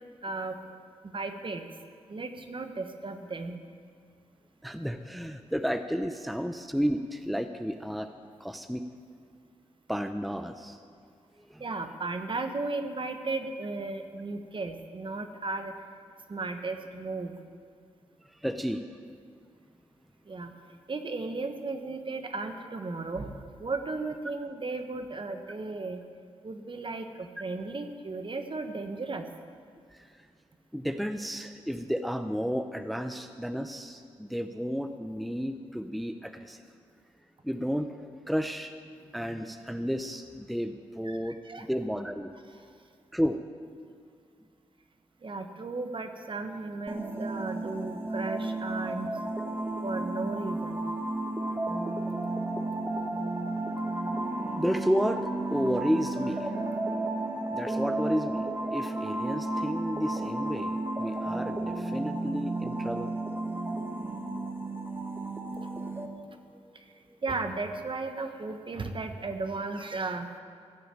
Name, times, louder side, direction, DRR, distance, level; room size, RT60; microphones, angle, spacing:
voice 1, 0.2-0.6 1.0-1.6 2.1-3.5 11.6-15.7 16.3-17.3 20.3-20.5 20.9-26.0 26.4-29.3 41.0-41.7 42.5-42.6 45.2-49.1 49.8-50.8 66.7-66.8 67.2-70.3, right 3 dB, 45° right, 7 dB, 1.3 m, -35 dB
voice 2, 4.6-8.1 8.4-8.8 9.9-10.8 11.4-11.6 18.2-19.0 29.9-30.1 30.7-36.6 37.4-37.9 38.3-38.7 39.1-42.3 43.1-43.4 54.6-56.5 57.5-63.1, equal, ahead, 8 dB, 0.6 m, -32 dB
sound 1, 46.9-66.1, right 2 dB, 20° right, 1.4 m, -33 dB
15.0 x 6.3 x 9.1 m, 2.2 s
cardioid pair, 55°, 12 cm